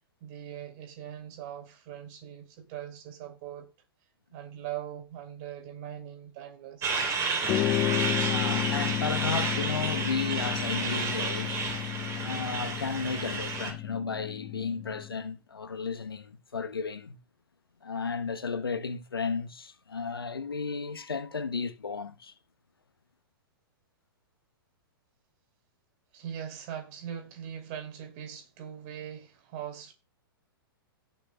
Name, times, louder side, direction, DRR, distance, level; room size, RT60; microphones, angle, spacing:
voice 1, 0.2-3.7 4.3-6.9 26.1-29.9, right 10 dB, 45° right, 3.0 m, -41 dB
Truck, 6.8-13.7, right 4 dB, 25° right, 3.5 m, -31 dB
sound 1, 7.4-15.2, left 15 dB, 25° left, 0.4 m, -32 dB
voice 2, 8.3-11.6 12.2-17.2 17.8-22.3, left 5 dB, 85° left, 1.1 m, -34 dB
18.0 x 6.2 x 2.3 m
figure-of-eight pair, 110°, 12 cm